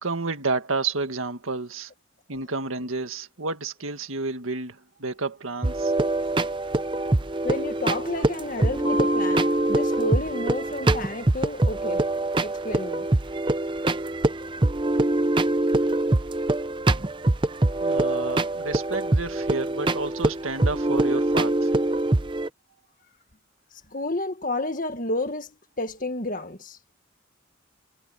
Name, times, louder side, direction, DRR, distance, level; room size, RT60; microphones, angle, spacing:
voice 1, 0.0-1.9 2.3-5.9 17.8-21.7, right 3 dB, 85° right, 1.8 m, -30 dB
sound 1, 5.6-22.5, right 2 dB, 25° right, 0.7 m, -24 dB
voice 2, 7.4-12.0 12.4-13.1 23.9-25.5 25.8-26.8, left 2 dB, 40° left, 1.8 m, -30 dB
Mallet percussion, 8.8-11.5, equal, 60° right, 3.7 m, -34 dB
head